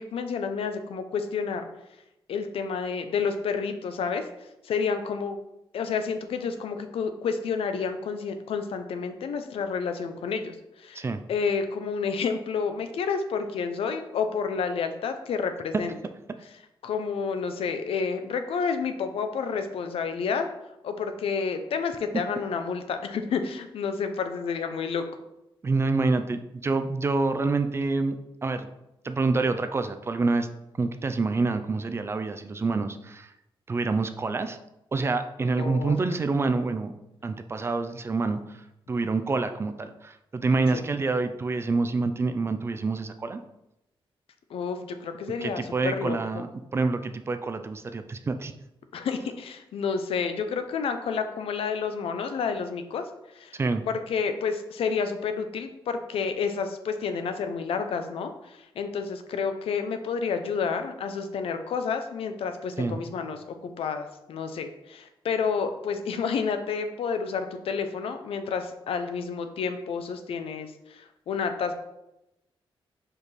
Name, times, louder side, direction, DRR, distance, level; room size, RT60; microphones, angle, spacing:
voice 1, 0.0-1.7 2.3-4.2 4.6-5.4 5.7-15.9 16.8-20.5 20.8-25.0 35.6-35.9 40.7-40.8 44.5-46.4 48.9-53.0 53.3-53.6 53.9-71.7, left 5 dB, 80° left, 8 dB, 0.6 m, -30 dB
voice 2, 25.6-28.7 29.0-30.5 30.8-33.3 33.7-34.6 34.9-36.9 37.2-38.6 38.9-43.4 45.4-48.5 53.5-53.8 62.8-63.0, right 3 dB, 25° right, 9 dB, 0.4 m, -27 dB
5.0 x 4.7 x 4.1 m, 0.89 s
wide cardioid pair, 145°, 9 cm